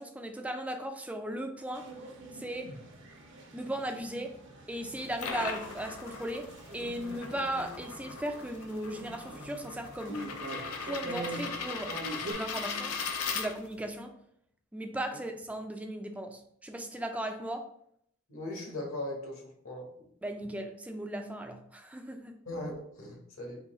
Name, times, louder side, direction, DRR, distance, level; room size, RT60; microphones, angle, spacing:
voice 1, 0.0-1.9 2.3-2.7 3.5-4.4 4.7-6.5 6.7-10.3 10.8-12.0 12.2-13.0 13.3-14.1 14.7-17.7 20.2-22.4, right 1 dB, 5° right, 5 dB, 0.4 m, -37 dB
sound 1, 1.7-12.3, right 2 dB, 60° right, 0.7 m, -44 dB
sound 2, 4.9-13.9, left 5 dB, 85° left, 0.5 m, -39 dB
voice 2, 18.3-19.9 22.5-23.6, left 1 dB, 70° left, 0 dB, 1.1 m, -39 dB
3.8 x 2.8 x 4.0 m, 0.70 s
head